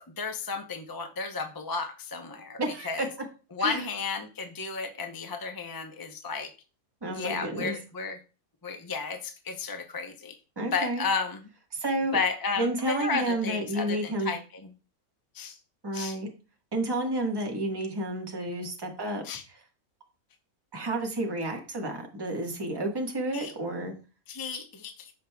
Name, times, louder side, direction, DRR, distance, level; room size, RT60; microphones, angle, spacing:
voice 1, 0.2-2.6 2.8-3.1 3.5-6.5 7.1-8.2 8.6-10.4 10.7-11.5 12.1-14.7 15.3-15.6 15.9-16.2 19.2-19.4 23.3-23.5 24.3-25.1, left 4 dB, 20° left, 5 dB, 0.6 m, -33 dB
voice 2, 2.6-3.1 3.6-3.9 7.0-7.8 10.6-11.0 11.7-12.2 12.6-14.3 15.8-16.3 16.7-19.6 20.7-23.9, right 1 dB, 15° right, 1 dB, 1.4 m, -31 dB
14.5 x 5.3 x 2.3 m, 0.35 s
omnidirectional pair, 1.5 m